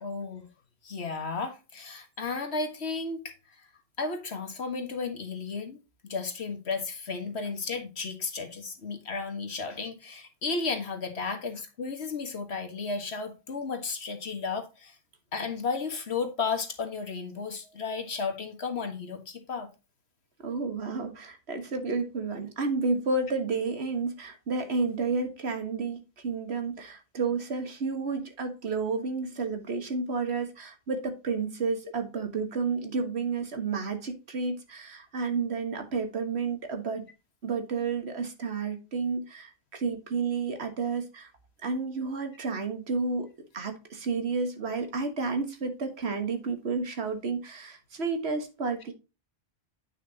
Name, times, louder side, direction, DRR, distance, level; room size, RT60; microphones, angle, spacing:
voice 1, 0.0-0.5 0.8-3.3 4.0-5.8 6.0-15.0 15.3-19.7, left 4 dB, 85° left, 1.8 m, -33 dB
voice 2, 20.4-37.1 37.4-41.3 41.6-43.3 43.5-48.9, right 4 dB, 85° right, 1.8 m, -31 dB
9.3 x 5.9 x 2.8 m
omnidirectional pair, 1.1 m